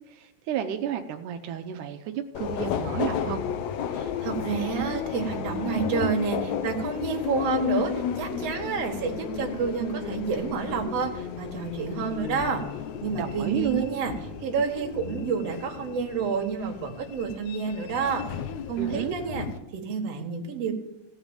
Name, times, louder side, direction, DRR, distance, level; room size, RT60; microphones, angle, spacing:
voice 1, 0.1-3.4 13.2-14.0 18.8-19.2, right 9 dB, 85° right, 7 dB, 2.3 m, -31 dB
Subway metro underground, 2.3-19.6, left 8 dB, 75° left, 2.0 m, -33 dB
voice 2, 3.9-12.6 13.0-14.1 14.4-18.2 18.7-19.5 19.7-20.7, right 5 dB, 55° right, 3 dB, 2.7 m, -29 dB
16.5 x 5.6 x 8.8 m, 0.96 s
omnidirectional pair, 3.5 m